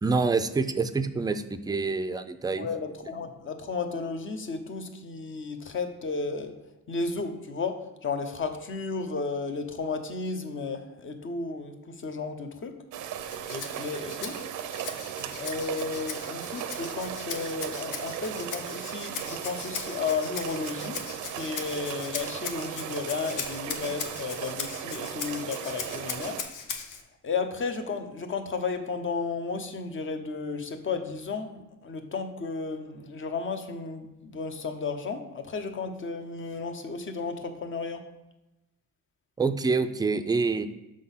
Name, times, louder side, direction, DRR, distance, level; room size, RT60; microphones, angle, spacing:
voice 1, 0.0-2.7 39.4-40.7, right 4 dB, 15° right, 9 dB, 0.4 m, -26 dB
voice 2, 2.5-6.6 6.9-12.8 13.5-14.4 15.3-21.0 21.3-26.4 27.2-38.1, left 4 dB, 40° left, 7 dB, 0.9 m, -33 dB
sound 1, 12.9-26.4, right 9 dB, 85° right, 0.6 m, -37 dB
Rattle (instrument), 13.2-27.0, left 6 dB, 85° left, 0.8 m, -39 dB
6.2 x 3.8 x 5.6 m, 0.98 s
cardioid pair, 90°, 30 cm